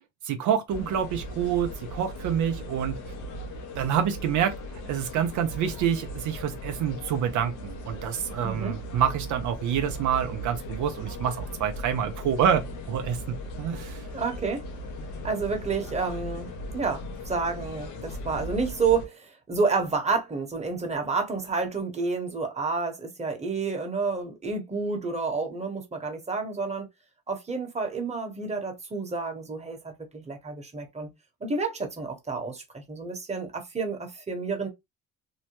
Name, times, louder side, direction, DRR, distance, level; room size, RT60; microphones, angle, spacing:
voice 1, 0.2-3.0 3.7-4.5 4.9-14.0, right 9 dB, 75° right, 0.5 m, -27 dB
sound 1, 0.7-19.1, equal, 85° left, 0.8 m, -38 dB
voice 2, 8.4-8.8 14.1-14.6 15.2-26.9 27.3-31.1 31.4-34.7, right 4 dB, 20° right, 1.0 m, -30 dB
2.8 x 2.1 x 2.9 m
cardioid pair, 90°, 30 cm